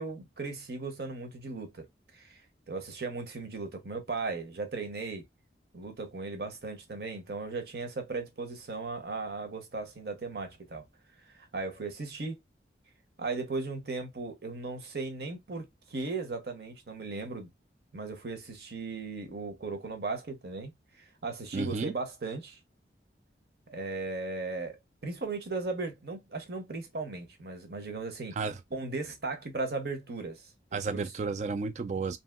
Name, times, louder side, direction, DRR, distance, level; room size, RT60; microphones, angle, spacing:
voice 1, 0.0-1.8 2.1-2.4 2.7-5.2 5.7-10.8 11.4-12.4 13.2-17.5 17.9-20.7 21.2-22.6 23.7-28.3 28.7-30.4 30.7-31.0, right 3 dB, 65° right, 0.8 m, -37 dB
voice 2, 21.5-21.9 28.4-28.6 30.7-32.2, right 4 dB, 40° right, 0.3 m, -32 dB
2.7 x 2.7 x 2.3 m
head